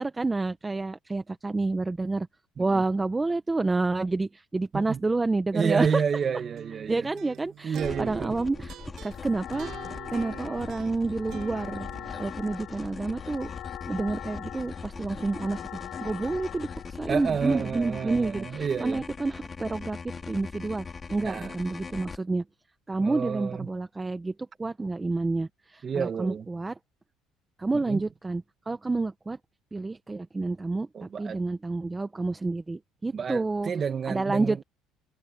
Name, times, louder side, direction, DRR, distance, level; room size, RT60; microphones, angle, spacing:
voice 1, 0.0-2.3 2.6-6.0 6.9-9.8 10.1-11.9 12.2-13.5 13.9-22.4 22.9-26.8 27.6-29.4 29.7-33.7 34.1-34.6, right 3 dB, 15° right, 0.8 m, -29 dB
voice 2, 5.5-7.1 7.6-8.3 17.1-19.0 21.2-21.5 23.0-23.7 25.8-26.5 27.8-28.0 30.9-31.4 33.1-34.6, right 6 dB, 30° right, 1.6 m, -30 dB
sound 1, 6.2-12.3, right 11 dB, 55° right, 1.0 m, -43 dB
sound 2, 7.8-22.2, left 5 dB, 25° left, 3.6 m, -41 dB
sound 3, 9.1-17.3, left 13 dB, 60° left, 2.4 m, -42 dB
cardioid pair, 130°, 0 cm